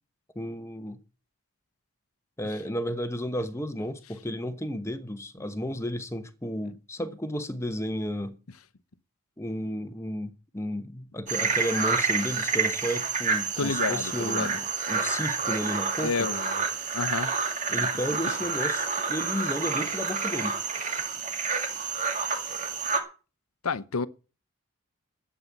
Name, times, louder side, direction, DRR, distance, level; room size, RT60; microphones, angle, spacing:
voice 1, 0.3-1.0 2.4-8.4 9.4-16.3 17.7-20.6, equal, 15° left, 1.0 m, -33 dB
sound 1, 11.3-23.0, right 5 dB, 35° right, 2.2 m, -29 dB
voice 2, 13.6-14.6 16.0-16.5 16.9-17.3 23.6-24.1, left 4 dB, 85° left, 0.8 m, -29 dB
12.0 x 8.4 x 7.4 m
head